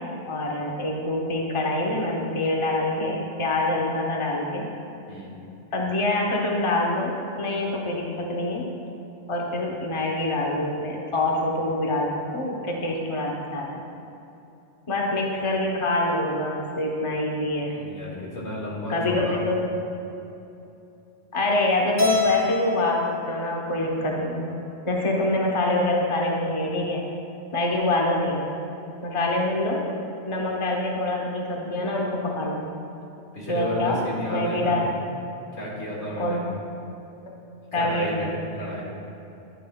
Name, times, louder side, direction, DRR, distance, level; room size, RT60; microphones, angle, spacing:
voice 1, 0.3-4.6 5.7-7.1 7.4-8.6 9.3-13.8 14.9-17.7 18.9-19.6 21.3-24.6 24.9-27.0 27.5-28.4 29.0-29.8 30.3-32.7 33.5-34.0 34.2-34.8 36.2-36.5 37.7-38.3, left 1 dB, 30° left, -1 dB, 1.0 m, -25 dB
voice 2, 17.7-19.4 33.3-34.8 35.5-36.4 37.7-38.8, left 1 dB, 80° left, -5 dB, 2.3 m, -32 dB
Keyboard (musical), 22.0-24.3, left 4 dB, 50° left, 1.9 m, -26 dB
11.0 x 10.0 x 2.3 m, 2.8 s
omnidirectional pair, 1.2 m